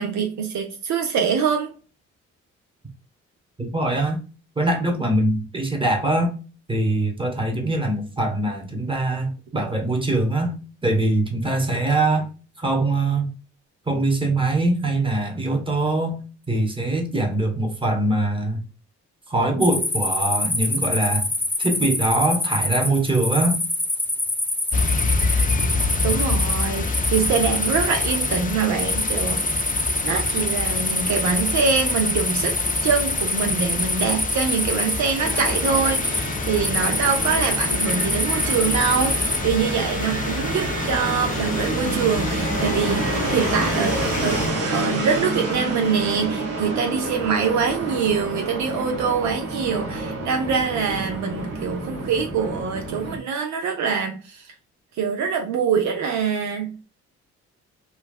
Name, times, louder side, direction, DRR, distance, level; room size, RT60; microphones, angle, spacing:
voice 1, 0.0-1.7 26.0-29.4 30.0-32.6 32.8-44.4 44.7-54.5 55.0-56.8, right 6 dB, 70° right, 0.6 m, -24 dB
voice 2, 3.6-4.2 4.6-6.3 6.7-12.3 12.6-13.3 13.9-16.2 16.5-18.6 19.3-21.3 21.6-23.6, right 2 dB, 15° right, 1.3 m, -22 dB
sound 1, 19.6-39.4, left 1 dB, 5° left, 0.8 m, -25 dB
sound 2, 24.7-44.5, left 4 dB, 30° left, 0.4 m, -28 dB
Fixed-wing aircraft airplane, 35.2-53.2, right 2 dB, 55° right, 1.3 m, -28 dB
3.1 x 2.4 x 2.4 m
supercardioid pair, 65°, 29 cm